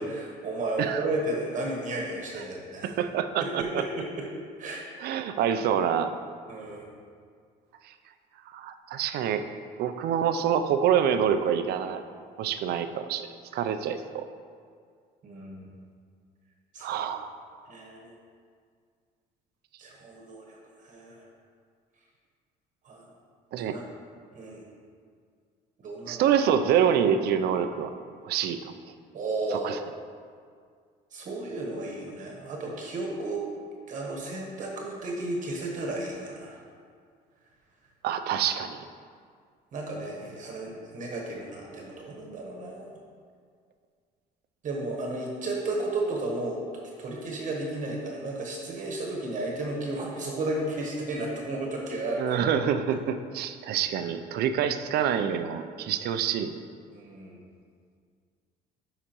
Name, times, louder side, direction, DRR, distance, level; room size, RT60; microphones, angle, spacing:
voice 1, 0.0-2.9 3.4-4.3 4.6-4.8 6.5-6.9 12.4-12.5 15.2-15.7 16.7-17.0 17.6-18.2 19.8-21.2 22.8-23.0 23.7-23.9 24.3-24.6 25.8-26.2 29.1-29.8 31.1-33.4 33.9-36.6 39.7-43.0 44.6-46.6 47.0-52.4 56.9-57.4, right 2 dB, 50° right, -1 dB, 1.1 m, -33 dB
voice 2, 2.8-3.8 5.0-6.1 7.8-7.9 8.5-9.4 9.8-12.0 12.4-13.3 13.5-14.2 16.8-17.3 23.5-23.7 26.1-28.0 28.2-28.6 29.5-29.8 38.0-38.8 52.2-56.6, right 8 dB, 70° right, 9 dB, 0.4 m, -26 dB
9.8 x 4.9 x 3.0 m, 2.1 s
cardioid pair, 110°, 17 cm